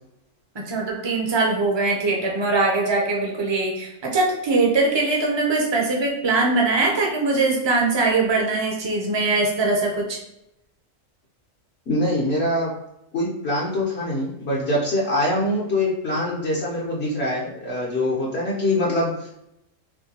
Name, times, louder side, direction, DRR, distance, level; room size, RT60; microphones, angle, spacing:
voice 1, 0.5-10.2, right 3 dB, 25° right, -1 dB, 0.6 m, -22 dB
voice 2, 11.9-12.7 13.1-19.3, left 1 dB, 55° left, -4 dB, 1.0 m, -24 dB
5.9 x 2.2 x 2.9 m, 0.84 s
omnidirectional pair, 1.4 m